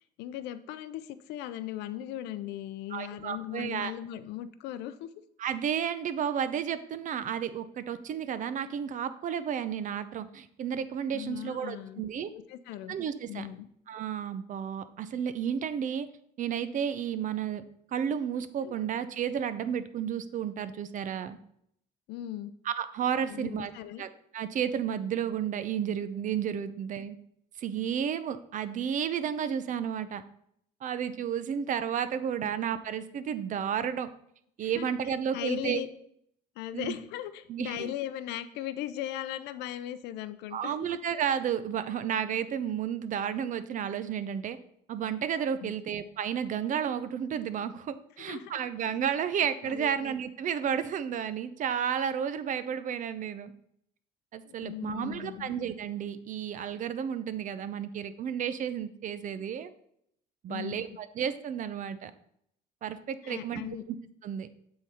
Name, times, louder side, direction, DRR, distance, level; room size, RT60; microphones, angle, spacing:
voice 1, 0.0-5.1 11.1-12.0 12.3-12.9 13.3-13.7 18.6-18.7 22.1-22.5 23.3-24.0 32.4-32.5 34.6-35.9 36.6-40.7 45.6-45.8 48.2-48.6 49.4-49.9 54.5-55.5 60.5-60.8 63.2-63.8, left 12 dB, 90° left, 13 dB, 0.5 m, -38 dB
voice 2, 2.9-3.9 5.4-12.3 12.9-13.5 13.9-16.1 16.4-17.6 17.9-21.4 22.7-23.7 24.0-24.1 24.3-27.2 27.6-30.2 30.8-34.1 34.6-35.8 36.7-36.9 37.5-37.9 40.5-44.6 44.9-53.5 54.3-59.7 60.4-62.1 62.8-63.6 63.9-64.0 64.2-64.5, right 8 dB, 50° right, 13 dB, 0.6 m, -32 dB
7.9 x 3.8 x 4.2 m, 0.70 s
cardioid pair, 110°, 17 cm